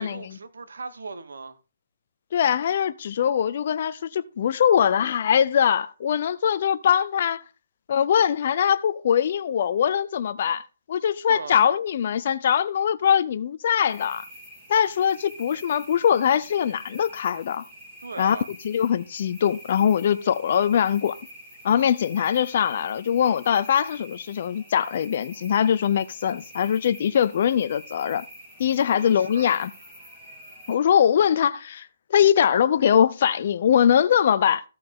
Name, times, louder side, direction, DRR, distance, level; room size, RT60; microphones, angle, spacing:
voice 1, 0.0-1.6 11.3-11.6 18.0-18.5 28.8-29.6, right 4 dB, 85° right, 1.0 m, -38 dB
voice 2, 2.3-7.4 7.9-10.6 10.9-14.2 14.7-17.6 18.2-18.4 18.6-21.2 21.6-28.2 28.6-29.7 30.7-34.6, left 8 dB, 45° left, 0.5 m, -22 dB
sound 1, 13.9-30.8, equal, 15° right, 2.6 m, -46 dB
13.5 x 5.4 x 3.6 m
hypercardioid pair, 165°, 0 cm